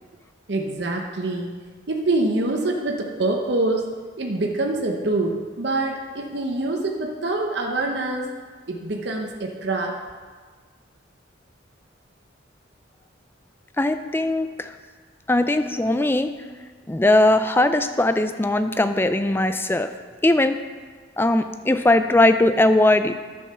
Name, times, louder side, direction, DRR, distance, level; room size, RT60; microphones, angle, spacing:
voice 1, 0.5-1.6 1.9-3.9 4.2-8.3 8.7-9.9, right 2 dB, 55° right, 1 dB, 0.8 m, -25 dB
voice 2, 13.8-14.7 15.3-16.3 16.9-19.9 20.2-20.6 21.2-23.2, left 1 dB, 10° left, 9 dB, 0.4 m, -19 dB
9.8 x 5.5 x 6.6 m, 1.5 s
head